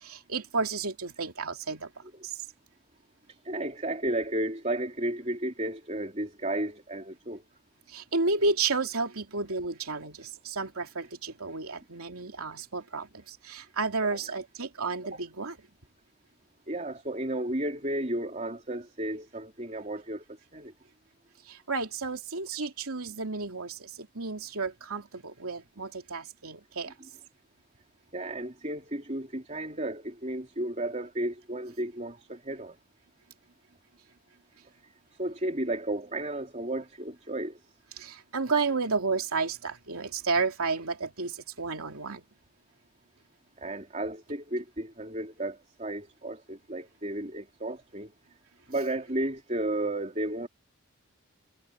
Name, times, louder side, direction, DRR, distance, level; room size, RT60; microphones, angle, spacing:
voice 1, 0.0-1.9 7.9-15.5 21.5-26.9 38.0-42.2, right 4 dB, 85° right, 2.9 m, -32 dB
voice 2, 3.3-7.4 14.1-14.3 15.1-15.2 16.7-20.2 20.5-20.7 26.8-27.1 28.1-32.8 35.2-37.6 43.6-48.1 48.7-50.5, right 1 dB, 30° right, 3.6 m, -33 dB
head